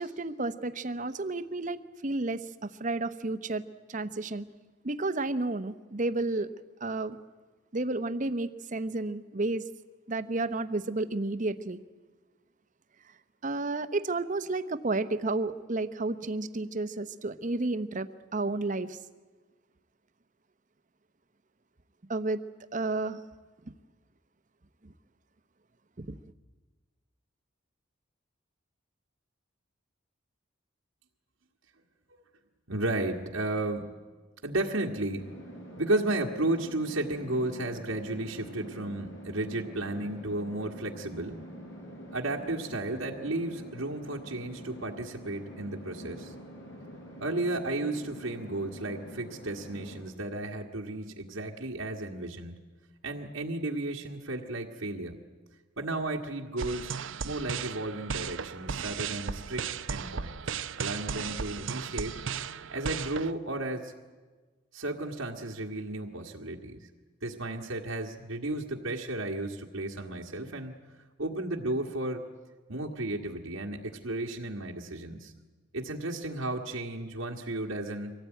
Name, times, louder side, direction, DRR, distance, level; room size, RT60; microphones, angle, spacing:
voice 1, 0.0-3.6 3.9-4.5 4.8-6.5 6.8-7.2 7.7-9.6 10.1-11.8 13.4-19.0 22.1-22.4 22.7-23.2 24.8-24.9 26.0-26.2, right 2 dB, 40° right, 11 dB, 0.9 m, -31 dB
voice 2, 32.7-33.9 34.4-35.3 35.8-41.4 42.1-46.3 47.2-52.6 53.0-55.2 55.8-56.9 57.2-62.1 62.7-63.9 64.7-66.9 67.2-70.8 71.2-72.2 72.7-75.3 75.7-78.1, right 2 dB, 85° right, 0 dB, 1.8 m, -33 dB
sound 1, 35.2-50.0, equal, 70° left, 6.1 m, -46 dB
sound 2, 56.6-63.3, right 6 dB, 70° right, 0.6 m, -35 dB
24.5 x 17.5 x 9.2 m, 1.3 s
head